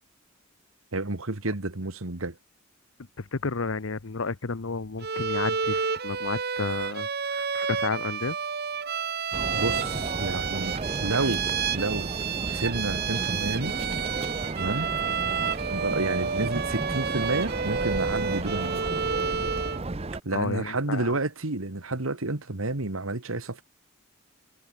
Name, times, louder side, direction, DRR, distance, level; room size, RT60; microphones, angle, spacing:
voice 1, 0.9-2.4 9.5-11.4 11.7-12.1 12.5-13.8 14.5-14.9 15.7-18.9 20.2-23.6, right 2 dB, 90° right, 2.0 m, -30 dB
voice 2, 3.2-8.4 15.0-15.2 20.3-21.1, left 4 dB, 75° left, 0.9 m, -32 dB
Bowed string instrument, 5.0-19.9, right 6 dB, 50° right, 1.4 m, -30 dB
sound 1, 9.3-20.2, right 2 dB, 30° right, 0.7 m, -33 dB
head